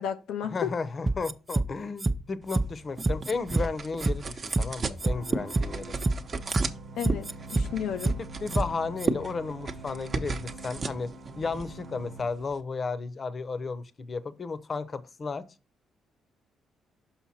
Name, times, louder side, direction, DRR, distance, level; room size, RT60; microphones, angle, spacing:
voice 1, 0.0-0.7 7.0-8.2, left 9 dB, 80° left, 0.4 m, -33 dB
voice 2, 0.5-5.9 8.4-11.1 11.4-15.5, left 4 dB, 40° left, 0.7 m, -33 dB
sound 1, 1.1-1.7 2.0-2.1 2.5-2.6 3.0-3.6 4.0-4.1 4.5-4.7 5.0-5.7 6.0-6.1 6.5-6.6 7.0-7.7 8.0-8.1 8.5-8.7 9.0-9.1, right 3 dB, 20° right, 0.4 m, -26 dB
sound 2, 2.4-12.6, right 4 dB, 40° right, 0.8 m, -36 dB
sound 3, 5.0-12.2, right 2 dB, 75° right, 1.0 m, -45 dB
5.9 x 5.5 x 4.2 m
cardioid pair, 90°, 0 cm